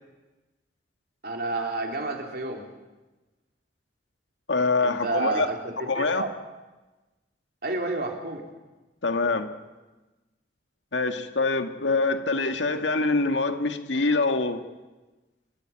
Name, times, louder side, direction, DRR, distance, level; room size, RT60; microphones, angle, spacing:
voice 1, 1.2-2.6 4.8-6.3 7.6-8.5, right 2 dB, 55° right, 2 dB, 3.5 m, -30 dB
voice 2, 4.5-5.5 5.9-6.2 9.0-9.6 10.9-14.6, left 3 dB, 85° left, 7 dB, 1.8 m, -25 dB
29.0 x 14.5 x 8.9 m, 1.2 s
head